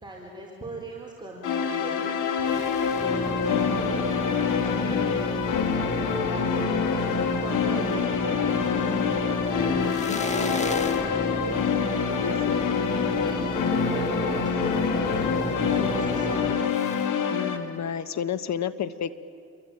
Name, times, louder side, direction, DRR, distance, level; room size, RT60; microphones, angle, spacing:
voice 1, 0.0-3.7 4.8-5.8 6.5-8.9 9.7-11.9 13.2-16.3, right 2 dB, 15° right, -2 dB, 4.7 m, -40 dB
sound 1, 1.4-17.6, left 7 dB, 80° left, 2.5 m, -26 dB
sound 2, 2.5-17.0, left 1 dB, 20° left, 1.8 m, -31 dB
voice 2, 4.4-5.0 9.8-10.2 12.2-12.7 17.3-19.2, left 8 dB, 60° left, 13 dB, 1.4 m, -32 dB
27.5 x 23.5 x 9.0 m, 2.3 s
cardioid pair, 90°, 31 cm